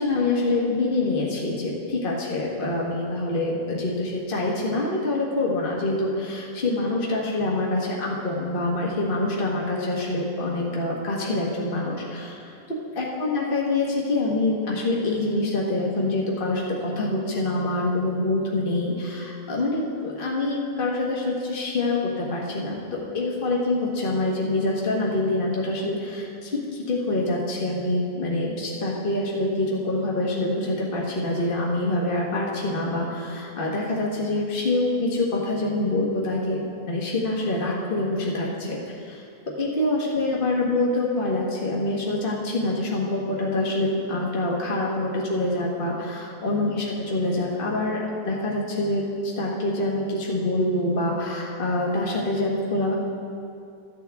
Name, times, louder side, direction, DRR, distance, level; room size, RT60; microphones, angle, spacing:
voice 1, 0.0-12.6 12.9-39.2 39.6-52.9, left 2 dB, 40° left, -3 dB, 1.5 m, -25 dB
13.5 x 8.7 x 3.4 m, 2.5 s
omnidirectional pair, 1.5 m